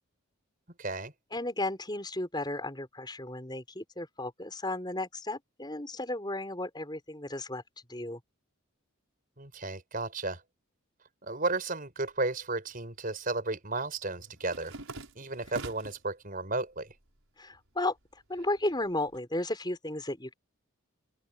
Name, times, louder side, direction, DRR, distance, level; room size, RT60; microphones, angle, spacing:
voice 1, 0.8-1.1 9.4-10.4 11.2-14.7 15.2-16.9, right 3 dB, 40° right, 5.7 m, -33 dB
voice 2, 1.3-7.6 7.9-8.2 17.4-18.0 18.3-20.3, left 2 dB, 20° left, 5.6 m, -34 dB
sound 1, 12.7-13.0 13.3-16.1 16.6-17.2 17.5-19.2, right 2 dB, 85° right, 6.1 m, -46 dB
open air
head